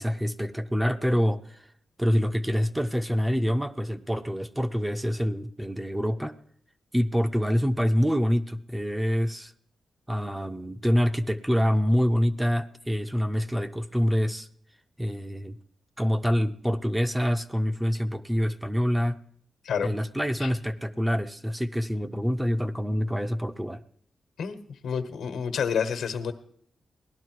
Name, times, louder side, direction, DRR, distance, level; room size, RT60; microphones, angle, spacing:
voice 1, 0.0-1.7 2.0-6.4 6.9-9.5 10.1-14.5 15.0-15.6 16.0-19.2 19.8-23.8, equal, 5° right, 10 dB, 0.5 m, -26 dB
voice 2, 19.6-20.0 20.4-20.5 24.4-26.3, left 6 dB, 85° left, 9 dB, 1.2 m, -29 dB
17.5 x 11.5 x 4.6 m, 0.65 s
wide cardioid pair, 165°, 0 cm